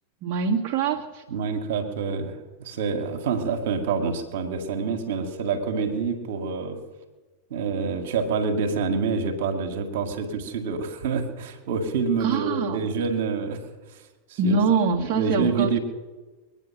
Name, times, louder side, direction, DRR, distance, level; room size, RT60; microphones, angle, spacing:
voice 1, 0.2-1.2 12.2-12.9 14.4-15.8, right 4 dB, 40° right, -2 dB, 1.6 m, -24 dB
voice 2, 1.3-6.8 7.5-13.6 14.3-14.6 15.0-15.8, right 5 dB, 55° right, 4 dB, 1.9 m, -27 dB
22.0 x 9.3 x 5.9 m, 1.3 s
figure-of-eight pair, 90°, 0 cm